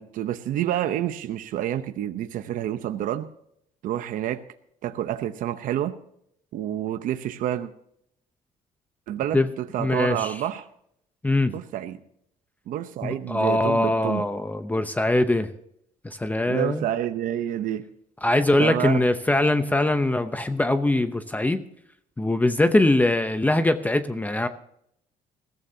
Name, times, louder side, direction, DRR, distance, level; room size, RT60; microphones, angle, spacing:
voice 1, 0.0-3.3 3.8-4.4 4.8-5.9 6.5-7.7 9.1-10.7 11.5-12.0 12.7-14.2 16.5-17.9 18.6-19.0, right 11 dB, 70° right, 9 dB, 0.8 m, -28 dB
voice 2, 9.8-10.3 11.2-11.5 13.0-15.5 16.0-16.9 18.2-21.6 22.2-24.5, left 2 dB, 10° left, 9 dB, 0.7 m, -22 dB
21.0 x 14.5 x 2.8 m, 0.71 s
cardioid pair, 125°, 14 cm